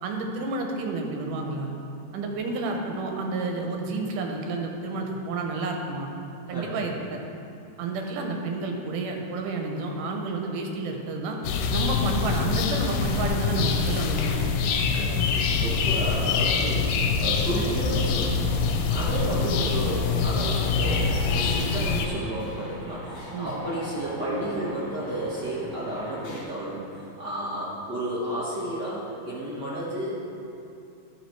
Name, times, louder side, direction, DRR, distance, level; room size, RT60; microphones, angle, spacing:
voice 1, 0.0-1.7 2.1-6.1 6.5-7.3 7.8-11.4 11.7-14.6 19.2-19.4 23.3-23.5, right 3 dB, 80° right, 2 dB, 2.4 m, -30 dB
voice 2, 6.5-6.8 14.9-30.1, right 1 dB, 65° right, -8 dB, 1.0 m, -32 dB
sound 1, 11.4-22.1, left 5 dB, 90° left, 2.1 m, -25 dB
sound 2, 17.3-26.4, left 1 dB, 50° left, 2.2 m, -41 dB
12.0 x 4.8 x 4.6 m, 2.7 s
omnidirectional pair, 3.6 m